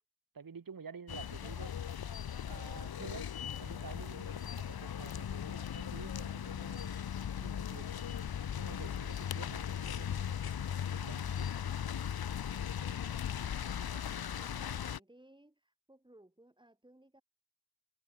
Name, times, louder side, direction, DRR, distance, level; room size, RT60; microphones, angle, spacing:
voice 1, 0.3-2.0 2.5-3.3 3.6-7.0 7.4-8.2 8.5-10.4 10.9-11.5, right 6 dB, 70° right, 2.1 m, -50 dB
sound 1, 1.1-15.0, left 8 dB, 85° left, 0.9 m, -38 dB
voice 2, 12.6-13.3 13.7-17.2, right 1 dB, 15° right, 3.8 m, -61 dB
wide cardioid pair, 100°, 36 cm